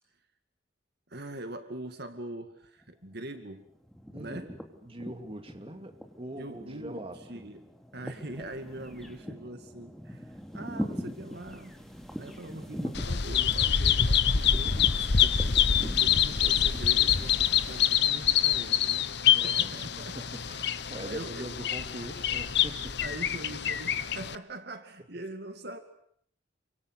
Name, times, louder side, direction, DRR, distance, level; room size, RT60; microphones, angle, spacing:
voice 1, 1.1-3.7 4.2-4.6 6.4-7.6 7.9-11.8 12.2-20.2 21.0-21.5 23.0-25.8, right 1 dB, 55° right, 2.3 m, -43 dB
sound 1, 2.8-3.4 3.7-17.9, equal, ahead, 2.7 m, -42 dB
voice 2, 4.1-7.6 19.3-23.0, right 1 dB, 30° right, 2.7 m, -43 dB
Bird vocalization bird call bird song, 12.9-24.4, left 9 dB, 60° left, 1.1 m, -26 dB
29.0 x 25.0 x 8.2 m
head